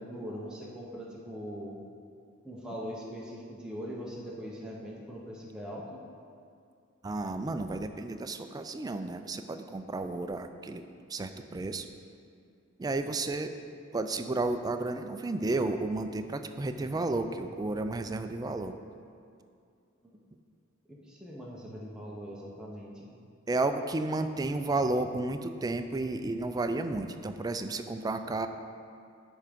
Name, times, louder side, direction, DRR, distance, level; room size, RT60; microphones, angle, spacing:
voice 1, 0.0-1.7 2.4-6.0 20.9-23.1, equal, 5° right, -4 dB, 0.8 m, -41 dB
voice 2, 7.0-10.8 11.1-11.9 12.8-13.5 13.9-18.7 23.5-28.5, right 2 dB, 20° right, 8 dB, 0.3 m, -32 dB
10.0 x 3.6 x 5.1 m, 2.4 s
head